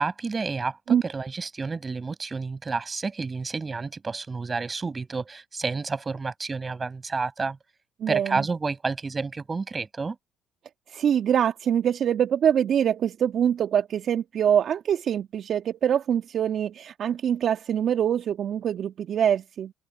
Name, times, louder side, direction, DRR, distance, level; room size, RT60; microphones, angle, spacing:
voice 1, 0.0-7.6 8.1-10.2, right 4 dB, 30° right, 7.5 m, -30 dB
voice 2, 8.0-8.4 10.9-19.7, right 9 dB, 55° right, 1.5 m, -24 dB
open air
supercardioid pair, 70°, 0 cm